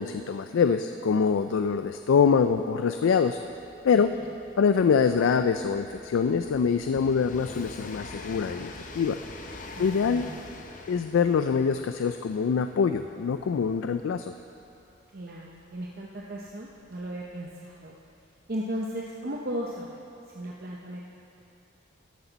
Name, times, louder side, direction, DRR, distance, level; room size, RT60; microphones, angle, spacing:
voice 1, 0.0-3.4 3.8-4.1 4.6-9.2 9.8-10.3 10.9-14.3, left 6 dB, 80° left, 9 dB, 0.3 m, -24 dB
Train, 1.4-18.1 19.0-19.1, left 2 dB, 40° left, 0.7 m, -46 dB
voice 2, 9.8-10.7 15.1-17.9 18.5-20.0 20.3-21.0, equal, 50° right, -2 dB, 0.7 m, -36 dB
13.0 x 11.5 x 4.0 m, 2.6 s
head